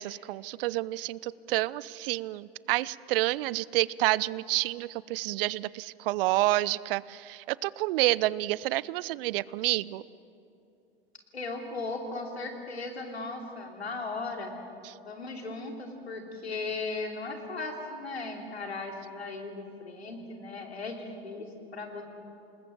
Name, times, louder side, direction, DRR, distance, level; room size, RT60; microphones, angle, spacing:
voice 1, 0.0-10.0 14.8-14.9, right 18 dB, 65° right, 21 dB, 0.6 m, -29 dB
voice 2, 11.3-14.5 15.0-22.0, left 3 dB, 90° left, 3 dB, 3.2 m, -37 dB
27.5 x 20.0 x 7.6 m, 2.7 s
figure-of-eight pair, 75°, 31 cm